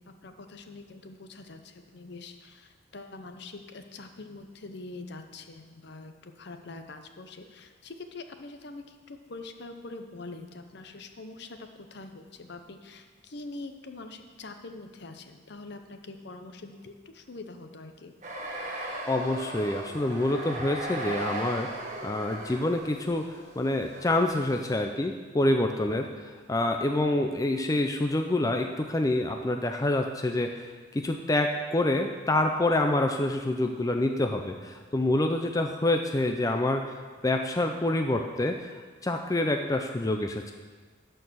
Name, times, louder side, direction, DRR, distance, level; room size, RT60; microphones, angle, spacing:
voice 1, 0.0-18.1, left 3 dB, 60° left, 7 dB, 0.7 m, -44 dB
sound 1, 18.2-24.8, right 1 dB, 40° right, 1.2 m, -37 dB
voice 2, 19.1-26.1 26.5-30.7 30.9-36.8 37.2-38.7 39.0-40.5, left 1 dB, 20° left, 4 dB, 0.4 m, -27 dB
12.0 x 4.6 x 6.3 m, 1.4 s
head